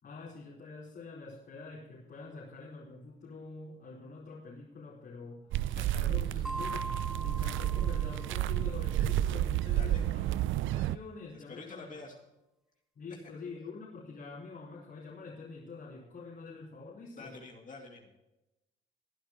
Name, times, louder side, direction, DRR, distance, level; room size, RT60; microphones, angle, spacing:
voice 1, 0.0-5.5 5.9-6.9 7.2-10.3 10.6-12.0 12.9-17.3, left 4 dB, 55° left, -6 dB, 4.5 m, -46 dB
sound 1, 5.5-11.0, right 13 dB, 80° right, 0.4 m, -31 dB
voice 2, 5.7-6.5 9.7-10.0 11.3-12.2 17.2-18.1, left 3 dB, 40° left, 0 dB, 2.4 m, -48 dB
sound 2, 6.4-8.9, right 1 dB, ahead, 0.7 m, -42 dB
20.5 x 9.6 x 3.0 m, 0.96 s
cardioid pair, 90°, 20 cm